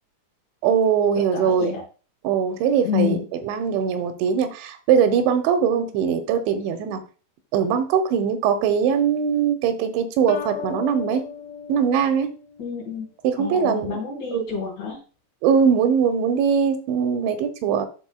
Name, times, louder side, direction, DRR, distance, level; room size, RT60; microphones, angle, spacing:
voice 1, 0.6-1.7 2.2-3.2 3.4-7.0 7.5-11.2 11.7-12.3 13.4-14.0 14.3-14.5 15.4-17.9, right 7 dB, 85° right, 7 dB, 3.0 m, -21 dB
voice 2, 1.1-1.8 2.8-3.3 12.6-13.1 13.4-15.0, left 8 dB, 45° left, -4 dB, 3.6 m, -28 dB
sound 1, 10.3-12.9, left 7 dB, 85° left, 2.1 m, -36 dB
12.0 x 4.4 x 2.2 m, 0.37 s
omnidirectional pair, 5.2 m